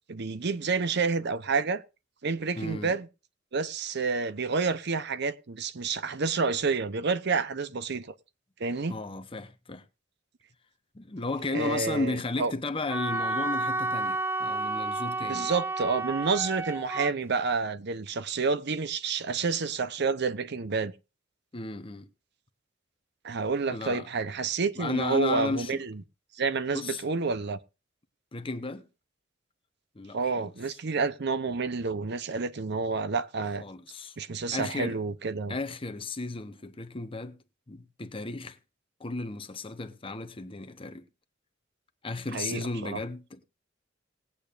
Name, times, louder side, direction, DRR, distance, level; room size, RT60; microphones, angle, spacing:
voice 1, 0.1-1.8 2.2-3.1 3.5-8.1 8.6-8.9 11.5-12.5 15.3-20.9 23.2-26.0 26.3-27.6 30.1-33.6 34.2-35.6 42.3-43.0, right 4 dB, 60° right, 0.7 m, -29 dB
voice 2, 2.5-2.9 8.9-9.8 10.9-15.5 21.5-22.1 23.7-24.1 24.8-25.8 26.7-27.0 28.3-28.9 29.9-30.5 33.6-34.2 34.5-35.0 35.5-37.4 37.7-38.6 39.0-41.0 42.0-43.4, left 3 dB, 30° left, 0.8 m, -34 dB
Wind instrument woodwind instrument, 12.9-17.1, right 2 dB, 10° right, 0.5 m, -31 dB
20.0 x 8.5 x 2.5 m
head